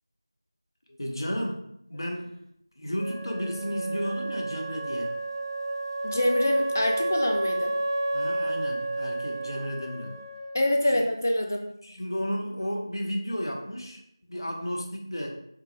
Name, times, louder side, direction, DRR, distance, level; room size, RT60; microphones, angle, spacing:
voice 1, 1.0-1.6 1.9-2.4 2.8-5.1 8.1-10.2 10.8-11.0 11.8-14.0 14.3-15.3, equal, 75° left, 0 dB, 0.8 m, -33 dB
Wind instrument woodwind instrument, 3.0-10.7, right 2 dB, 60° right, 0.3 m, -31 dB
voice 2, 6.0-7.7 10.5-11.7, left 1 dB, 40° left, 3 dB, 0.4 m, -25 dB
3.5 x 2.1 x 3.1 m, 0.74 s
figure-of-eight pair, 175°, 2 cm